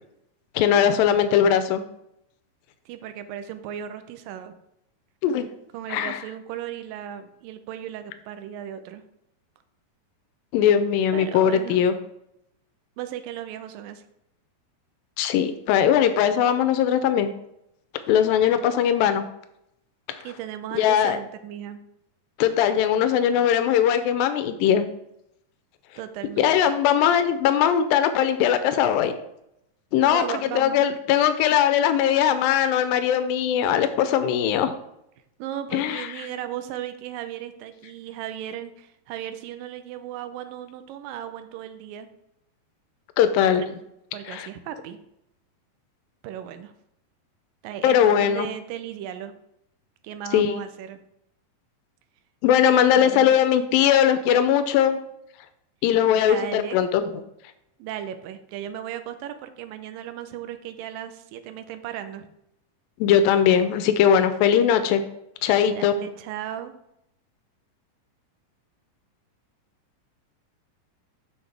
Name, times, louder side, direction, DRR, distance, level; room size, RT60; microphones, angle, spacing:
voice 1, 0.6-1.8 5.2-5.5 5.9-6.2 10.5-12.0 15.2-17.3 18.1-19.2 20.1-20.2 20.7-21.2 22.4-24.9 26.4-29.1 29.9-34.7 35.7-36.1 43.2-43.7 44.3-44.5 47.8-48.5 50.3-50.6 52.4-55.0 55.8-57.2 63.0-65.0 65.4-65.9, left 9 dB, 85° left, 10 dB, 2.3 m, -20 dB
voice 2, 2.9-4.5 5.7-9.0 11.1-11.8 13.0-14.0 20.1-21.8 26.0-26.7 30.1-30.9 35.4-42.1 43.5-43.7 44.1-45.0 46.2-46.7 47.6-49.3 50.0-51.0 53.0-53.3 56.1-56.8 57.8-62.3 65.7-66.7, right 10 dB, 80° right, 9 dB, 2.3 m, -36 dB
7.8 x 6.2 x 3.3 m, 0.79 s
omnidirectional pair, 4.0 m